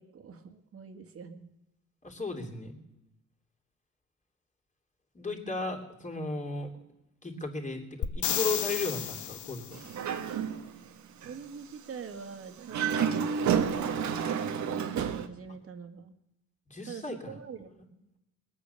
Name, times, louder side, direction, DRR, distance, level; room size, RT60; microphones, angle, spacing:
voice 1, 0.0-1.5 11.2-14.9 15.3-16.1 16.9-17.7, right 6 dB, 50° right, 6 dB, 1.9 m, -45 dB
voice 2, 2.0-2.8 5.1-6.7 7.2-9.8 16.7-17.4, left 3 dB, 25° left, 1 dB, 3.0 m, -35 dB
sound 1, 8.0-9.9 13.7-13.8, left 10 dB, 75° left, 1.0 m, -32 dB
Dog, 9.7-10.8 11.2-11.4 12.6-15.3, right 7 dB, 70° right, 1.3 m, -30 dB
21.0 x 8.5 x 6.9 m, 0.90 s
cardioid pair, 90°, 30 cm